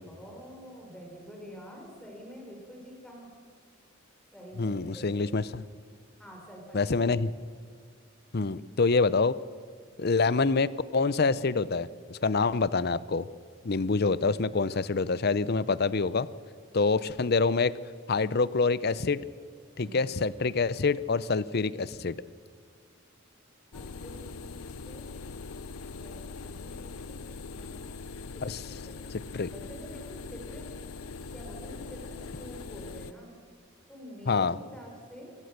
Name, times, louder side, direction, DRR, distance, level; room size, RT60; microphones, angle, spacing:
voice 1, 0.1-3.3 4.3-5.3 6.2-7.0 14.7-14.8 19.8-20.0 23.7-25.1 25.9-27.2 27.5-28.0 28.3-29.0 29.5-30.7 31.3-33.3 33.9-35.3, equal, 5° left, -1 dB, 4.9 m, -47 dB
voice 2, 4.6-5.6 6.7-7.3 8.3-9.3 10.0-13.3 13.6-16.3 16.7-17.7 18.1-19.2 19.8-22.2 28.4-28.6 29.3-29.5 34.3-34.5, left 4 dB, 50° left, 18 dB, 0.6 m, -26 dB
sound 1, 23.7-33.1, left 4 dB, 85° left, 0.6 m, -42 dB
27.0 x 16.0 x 6.7 m, 2.1 s
head